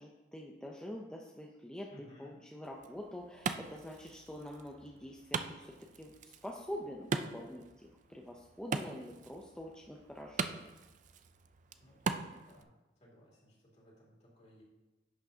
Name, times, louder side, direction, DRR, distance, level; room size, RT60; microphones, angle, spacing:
voice 1, 0.0-7.6 8.1-10.6, equal, 5° left, -1 dB, 0.6 m, -46 dB
voice 2, 1.9-2.4 11.8-12.7 13.0-14.6, left 1 dB, 40° left, -4 dB, 2.5 m, -59 dB
Wood, 2.6-12.6, right 5 dB, 40° right, 0.4 m, -42 dB
10.5 x 6.5 x 2.8 m, 1.1 s
head